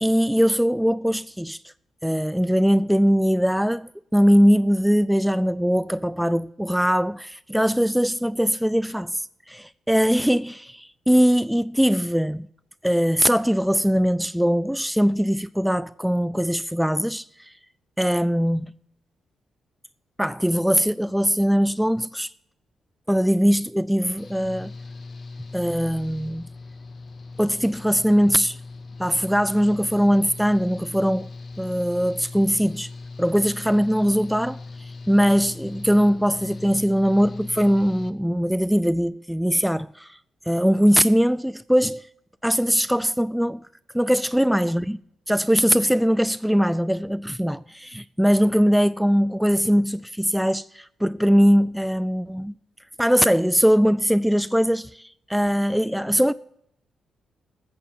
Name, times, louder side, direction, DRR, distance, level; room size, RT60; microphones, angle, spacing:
voice 1, 0.0-1.6 2.0-12.5 12.8-17.5 18.0-18.7 20.2-22.3 23.1-24.7 25.5-26.5 27.4-28.6 29.0-31.3 31.6-32.9 33.2-40.2 40.5-42.1 42.4-43.7 43.9-45.0 45.3-52.5 53.0-56.3, equal, 5° right, 0.4 m, -21 dB
Engine / Mechanical fan, 24.2-38.1, left 3 dB, 50° left, 0.9 m, -39 dB
13.5 x 8.6 x 5.9 m
hypercardioid pair, 45°, 0 cm